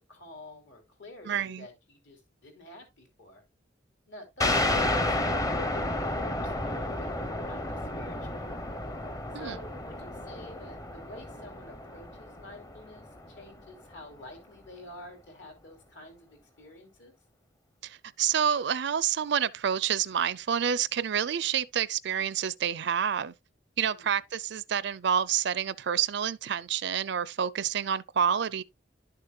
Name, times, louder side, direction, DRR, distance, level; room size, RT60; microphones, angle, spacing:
voice 1, 0.1-3.4 4.1-8.5 9.4-17.1 23.9-24.2, left 1 dB, 70° left, 3.3 m, -49 dB
voice 2, 1.3-1.7 9.3-9.6 17.8-23.3 23.8-28.6, right 8 dB, 65° right, 0.5 m, -28 dB
sound 1, 4.4-13.6, left 1 dB, 20° left, 0.8 m, -31 dB
11.5 x 6.7 x 2.4 m
head